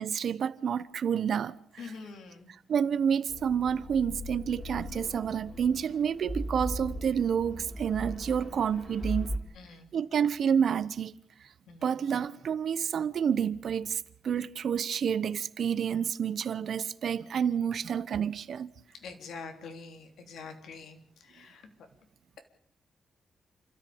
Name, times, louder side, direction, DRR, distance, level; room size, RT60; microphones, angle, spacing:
voice 1, 0.0-1.9 2.7-9.3 9.9-11.1 11.8-18.7, right 7 dB, 60° right, 1.0 m, -29 dB
voice 2, 1.8-2.5 9.6-9.9 11.7-11.9 19.0-21.7, left 4 dB, 80° left, 3.4 m, -45 dB
sound 1, 3.3-9.4, equal, 25° left, 3.6 m, -38 dB
29.0 x 14.0 x 8.7 m
wide cardioid pair, 145°, 0 cm